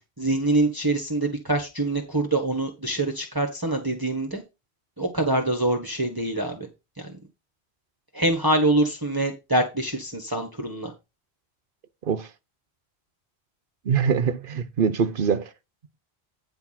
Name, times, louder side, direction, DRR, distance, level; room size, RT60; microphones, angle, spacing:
voice 1, 0.2-4.4 5.0-6.7 7.0-7.1 8.1-10.9, right 2 dB, 20° right, 1.4 m, -25 dB
voice 2, 13.8-15.5, right 6 dB, 55° right, 1.0 m, -23 dB
9.6 x 4.7 x 5.8 m
omnidirectional pair, 1.1 m